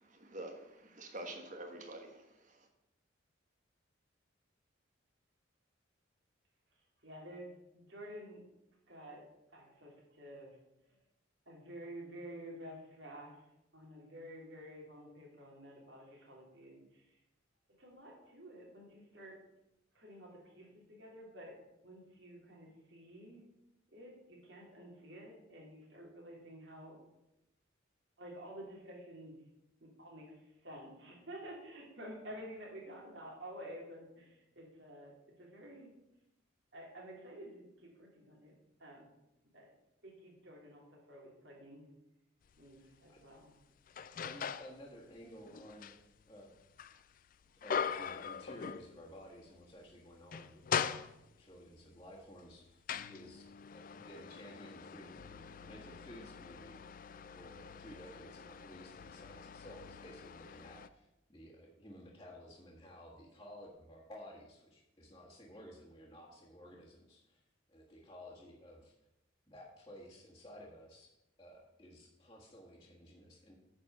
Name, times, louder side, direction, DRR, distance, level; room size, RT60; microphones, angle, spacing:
voice 1, 0.0-2.7, right 1 dB, 40° right, 3 dB, 1.3 m, -47 dB
voice 2, 7.0-8.4 8.9-9.3 9.5-10.6 10.9-11.0 11.5-13.4 13.7-17.2 17.7-19.4 19.9-23.4 23.9-27.0 28.2-29.4 29.8-35.9 36.7-39.1 39.5-39.7 40.0-41.9 42.6-43.5, equal, 60° right, -3 dB, 3.0 m, -51 dB
sound 1, 42.5-42.6 43.2-44.8 45.2-49.3 49.6-49.7 50.1-51.6 52.3-60.9, left 7 dB, 45° left, 0.3 m, -42 dB
voice 3, 42.8-43.2 44.3-45.9 46.2-46.6 47.6-51.0 51.4-52.8 53.1-53.5 53.7-56.8 57.3-67.4 67.7-68.9 69.5-71.1 71.4-73.5, equal, 20° left, -7 dB, 1.6 m, -54 dB
9.6 x 4.5 x 6.7 m, 0.89 s
head